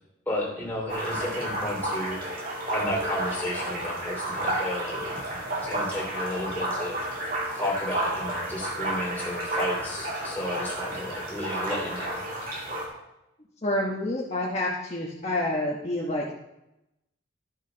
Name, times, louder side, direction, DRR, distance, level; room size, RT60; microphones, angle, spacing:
voice 1, 0.3-2.2 2.7-7.0 7.5-12.2, left 1 dB, 10° left, -4 dB, 2.8 m, -33 dB
sound 1, 0.9-12.9, right 1 dB, 45° right, 2.2 m, -31 dB
voice 2, 13.6-16.3, left 1 dB, 35° left, -3 dB, 1.1 m, -28 dB
13.0 x 6.2 x 3.9 m, 0.89 s
head